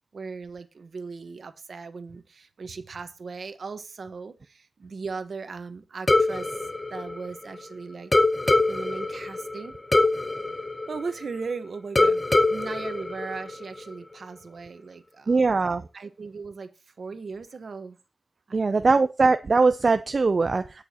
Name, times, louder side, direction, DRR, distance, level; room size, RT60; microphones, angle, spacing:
voice 1, 0.1-6.5 6.9-8.1 8.7-9.7 10.9-12.2 12.5-15.4 15.9-18.0 18.5-18.9, right 4 dB, 65° right, 1.2 m, -38 dB
sound 1, 6.1-7.7 8.1-11.5 12.0-13.9, left 2 dB, 25° left, 0.9 m, -24 dB
voice 2, 15.3-15.8 18.5-20.8, right 4 dB, 45° right, 0.5 m, -21 dB
19.5 x 7.0 x 2.9 m
wide cardioid pair, 80°, 0 cm